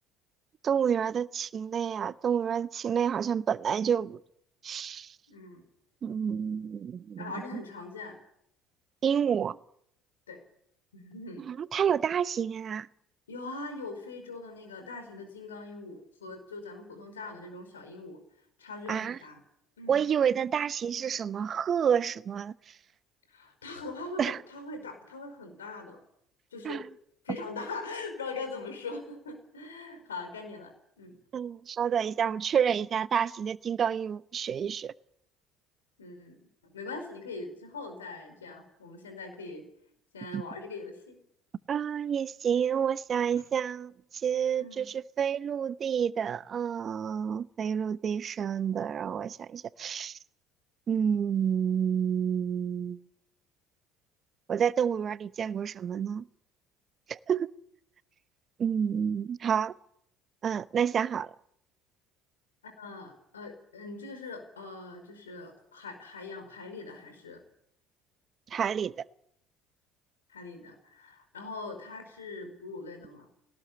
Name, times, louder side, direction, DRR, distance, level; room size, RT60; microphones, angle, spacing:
voice 1, 0.6-4.2 4.6-5.1 6.0-7.6 9.0-9.6 11.5-12.9 18.9-19.2 19.9-22.5 24.2-24.4 26.6-26.8 31.3-34.9 40.3-40.4 41.7-43.9 44.2-50.2 50.9-53.0 54.5-56.2 57.1-57.5 58.6-59.7 60.4-61.3 68.5-68.9, right 8 dB, 45° right, 0.9 m, -29 dB
voice 2, 5.3-5.6 7.2-8.2 10.3-10.4 10.9-11.5 13.3-18.2 18.6-19.4 19.8-20.0 23.3-26.0 26.5-26.8 27.2-30.7 31.0-31.2 36.0-39.6 40.1-41.2 44.6-44.9 62.6-67.4 70.3-73.3, left 3 dB, 90° left, 5.1 m, -42 dB
20.5 x 18.5 x 8.8 m
hypercardioid pair, 65°, 0 cm